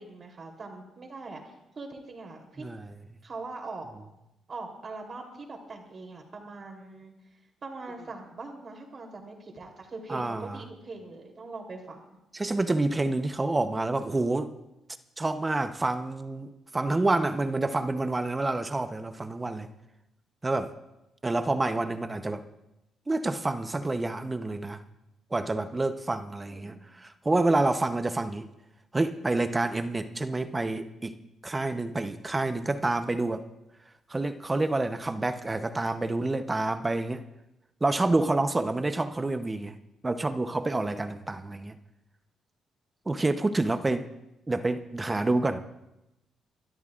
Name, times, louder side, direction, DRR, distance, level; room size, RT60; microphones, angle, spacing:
voice 1, 0.0-2.6 3.2-3.9 4.5-7.1 7.6-12.2 26.4-26.8 41.3-41.4, right 3 dB, 40° right, 3.2 m, -42 dB
voice 2, 10.1-10.6 12.3-14.5 15.2-19.7 20.4-20.7 21.2-22.4 23.1-24.8 25.3-28.5 28.9-31.2 31.4-33.4 34.1-37.2 37.8-39.8 40.0-41.8 43.1-44.1 44.5-45.7, right 2 dB, 20° right, 0.8 m, -28 dB
29.0 x 12.5 x 2.5 m
cardioid pair, 90°, 0 cm